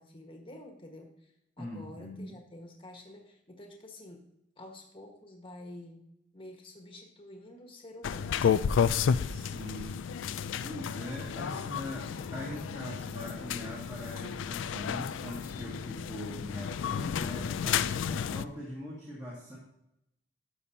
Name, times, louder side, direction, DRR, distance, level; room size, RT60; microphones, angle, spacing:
voice 1, 0.0-4.3 4.6-6.0 6.3-8.8 9.7-9.9 11.5-11.7, left 1 dB, 25° left, 2 dB, 1.4 m, -49 dB
voice 2, 1.6-2.2 9.2-19.6, left 1 dB, 20° right, -6 dB, 2.0 m, -42 dB
sound 1, 8.0-18.4, left 7 dB, 75° left, 0.3 m, -32 dB
12.0 x 6.9 x 2.8 m, 0.83 s
head